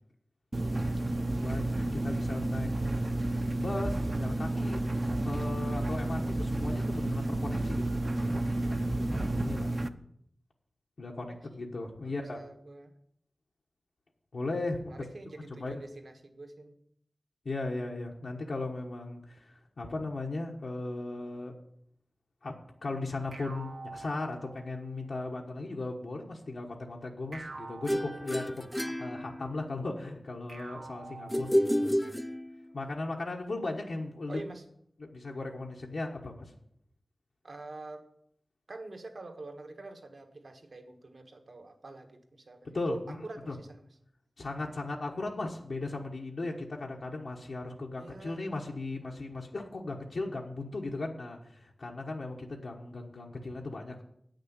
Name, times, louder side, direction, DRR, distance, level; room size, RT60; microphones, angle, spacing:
sound 1, 0.5-9.9, right 1 dB, 35° right, 0.6 m, -31 dB
voice 1, 1.2-3.1 3.6-4.8 5.2-7.9 8.7-9.7 11.0-12.4 14.3-15.0 15.5-15.8 17.4-21.5 22.4-22.5 22.8-32.0 32.7-34.4 35.0-36.5 42.7-43.6 44.4-54.0, left 2 dB, 75° left, -1 dB, 1.2 m, -37 dB
voice 2, 11.1-11.6 12.0-12.9 14.9-16.7 34.3-34.6 37.4-38.0 38.7-43.9 47.9-48.4, right 2 dB, 65° right, 5 dB, 1.4 m, -46 dB
sound 2, 23.3-24.9 27.3-28.9 30.5-32.0, right 3 dB, 90° right, 1.4 m, -46 dB
sound 3, 27.9-29.8 31.3-32.8, equal, 10° left, 0.4 m, -30 dB
8.8 x 6.5 x 8.1 m, 0.70 s
wide cardioid pair, 75°, 0 cm